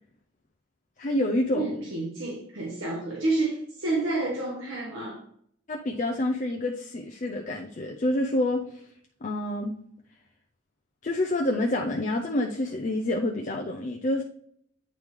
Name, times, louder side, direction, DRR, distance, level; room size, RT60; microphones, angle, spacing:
voice 1, 1.0-1.8 5.7-8.6 9.2-9.8 11.0-14.2, left 1 dB, 40° left, 1 dB, 0.5 m, -27 dB
voice 2, 1.5-5.2, right 2 dB, 90° right, -3 dB, 1.3 m, -29 dB
9.0 x 3.2 x 3.5 m, 0.66 s
head